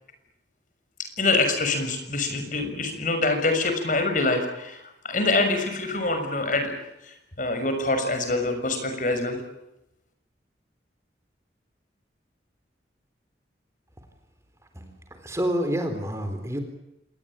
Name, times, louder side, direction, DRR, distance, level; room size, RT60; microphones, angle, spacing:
voice 1, 1.2-4.8 5.0-6.7 7.4-9.4, left 2 dB, 45° left, 7 dB, 6.4 m, -25 dB
voice 2, 15.2-16.6, equal, 15° right, 6 dB, 4.0 m, -27 dB
27.0 x 21.5 x 9.1 m, 0.86 s
head